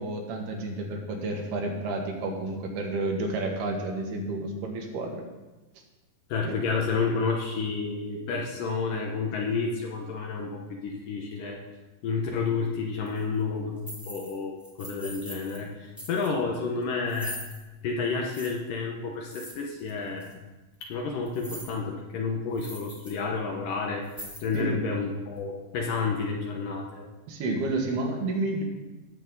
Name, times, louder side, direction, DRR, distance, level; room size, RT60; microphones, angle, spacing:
voice 1, 0.0-5.2 6.4-6.6 24.5-24.8 27.3-28.6, right 2 dB, 75° right, 1 dB, 3.5 m, -30 dB
voice 2, 6.3-11.6 12.0-17.4 17.8-20.3 20.8-24.1 24.4-27.0, left 4 dB, 70° left, 0 dB, 2.3 m, -30 dB
sound 1, 13.0-13.2 13.8-14.3 14.6-15.6 16.0-16.3 17.1-17.6 18.3-18.5 19.3-19.9 20.2-20.3 21.2-21.7 22.1-22.2 22.5-23.1 23.4-23.6 24.0-24.7, equal, ahead, 0.7 m, -42 dB
17.5 x 7.3 x 4.0 m, 1.1 s
omnidirectional pair, 4.6 m